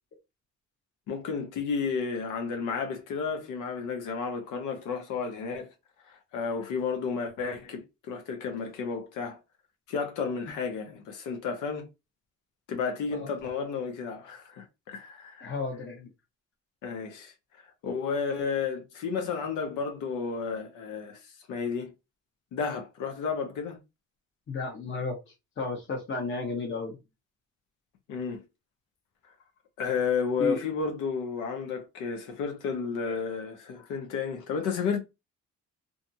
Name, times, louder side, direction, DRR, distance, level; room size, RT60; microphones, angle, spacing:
voice 1, 1.1-5.7 6.1-9.4 9.9-11.9 12.7-15.5 16.8-17.3 17.8-21.2 21.5-21.9 22.5-23.8 28.1-28.4 29.8-35.0, left 5 dB, 90° left, 0.7 m, -32 dB
voice 2, 15.4-16.1 24.5-25.2 25.6-27.0 30.4-30.6, left 3 dB, 40° left, 0.9 m, -33 dB
2.6 x 2.4 x 2.6 m
cardioid pair, 90°, 30 cm